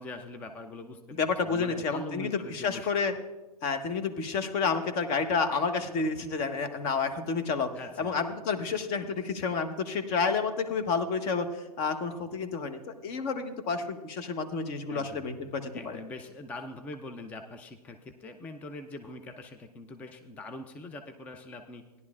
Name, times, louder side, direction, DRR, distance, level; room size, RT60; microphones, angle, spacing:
voice 1, 0.0-1.0 1.5-2.9 7.7-8.1 14.9-21.8, left 2 dB, 5° left, 7 dB, 0.4 m, -43 dB
voice 2, 1.2-3.1 3.6-7.7 8.0-16.0, left 5 dB, 30° left, 8 dB, 1.0 m, -30 dB
17.0 x 11.0 x 2.4 m, 1.1 s
hypercardioid pair, 120°, 20 cm